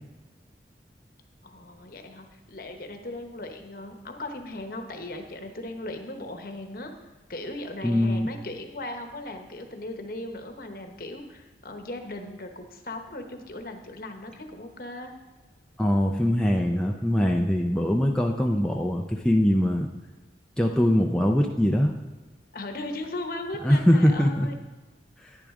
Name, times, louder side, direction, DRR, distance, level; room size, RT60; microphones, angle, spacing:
voice 1, 1.4-6.9 7.3-15.1 22.5-24.5, left 2 dB, 50° left, 5 dB, 1.1 m, -38 dB
voice 2, 7.8-8.3 15.8-19.9 20.6-21.9 23.6-24.5, equal, 5° left, 0 dB, 0.5 m, -22 dB
10.5 x 10.0 x 3.7 m, 1.2 s
head